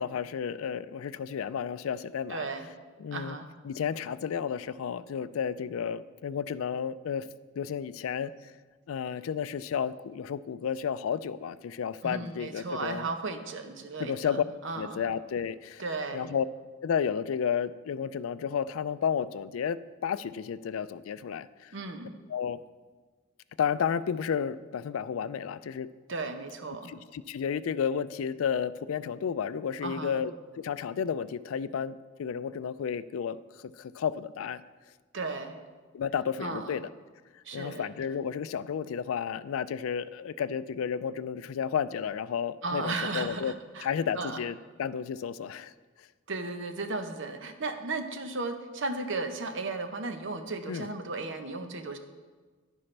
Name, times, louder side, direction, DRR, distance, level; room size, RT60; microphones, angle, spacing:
voice 1, 0.0-2.4 3.0-3.4 3.6-7.3 7.6-8.3 8.9-13.1 14.0-14.4 14.8-15.8 16.1-16.5 16.8-21.8 22.3-22.6 23.6-25.9 26.9-34.6 35.9-36.9 37.5-43.5 43.8-45.7 50.7-50.9, left 7 dB, 80° left, 15 dB, 0.3 m, -32 dB
voice 2, 2.3-2.7 3.1-3.5 12.0-15.0 15.8-16.3 21.7-22.2 26.1-26.9 29.8-30.2 35.1-35.6 36.4-36.8 37.4-37.9 42.6-43.9 44.1-44.4 46.3-52.0, right 3 dB, 60° right, 7 dB, 0.8 m, -35 dB
11.0 x 9.9 x 3.3 m, 1.4 s
head